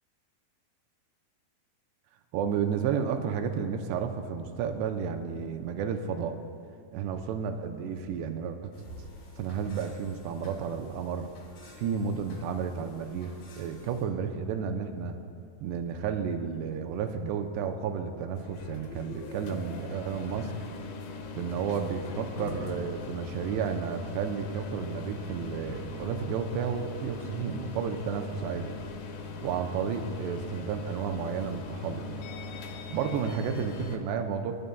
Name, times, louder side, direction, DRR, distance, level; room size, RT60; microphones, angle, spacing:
voice 1, 2.3-6.4 6.9-8.7 9.4-11.3 11.8-15.2 15.6-20.5 21.4-28.7 29.4-32.3 32.9-34.5, right 7 dB, 85° right, 6 dB, 2.7 m, -32 dB
sound 1, 8.7-14.0, left 1 dB, 55° left, 2.8 m, -51 dB
sound 2, 18.3-34.0, left 3 dB, 75° left, 2.2 m, -40 dB
24.0 x 11.0 x 2.2 m, 2.4 s
omnidirectional pair, 5.0 m